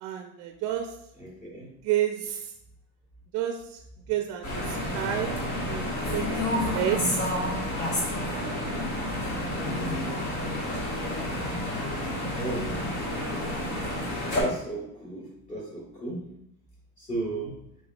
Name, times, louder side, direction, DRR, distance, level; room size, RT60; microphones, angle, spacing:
voice 1, 0.0-0.9 1.8-2.5 3.3-3.8 4.1-5.4 5.6-6.4 6.7-7.2 8.3-8.6, right 11 dB, 55° right, 5 dB, 0.4 m, -30 dB
voice 2, 1.2-1.7 12.4-12.8 14.3-16.2 17.0-17.6, right 2 dB, 25° left, -3 dB, 1.6 m, -35 dB
sound 1, 4.4-14.4, left 1 dB, 55° left, 1.5 m, -30 dB
5.1 x 3.3 x 2.3 m, 0.80 s
cardioid pair, 130°, 33 cm